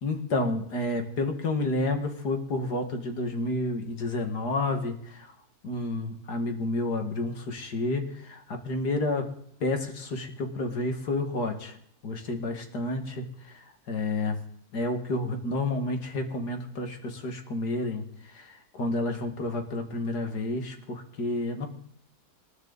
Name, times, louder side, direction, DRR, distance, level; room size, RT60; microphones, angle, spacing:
voice 1, 0.0-5.3 5.6-9.3 9.6-11.8 12.0-14.4 14.7-21.7, left 2 dB, 85° left, 5 dB, 2.5 m, -30 dB
27.0 x 11.0 x 4.1 m, 0.68 s
omnidirectional pair, 1.7 m